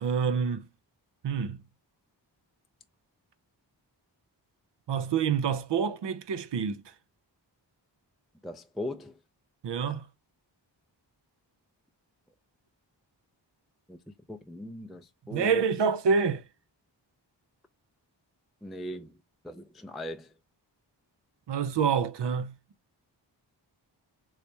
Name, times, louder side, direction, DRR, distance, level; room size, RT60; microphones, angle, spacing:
voice 1, 0.0-0.7 1.2-1.6 4.9-6.8 9.6-10.1 15.3-16.4 21.5-22.6, right 6 dB, 70° right, 0.6 m, -27 dB
voice 2, 8.4-9.2 13.9-14.0 14.3-15.7 18.6-19.2 19.4-20.3, left 1 dB, ahead, 0.4 m, -39 dB
3.3 x 3.2 x 2.7 m
wide cardioid pair, 80°, 44 cm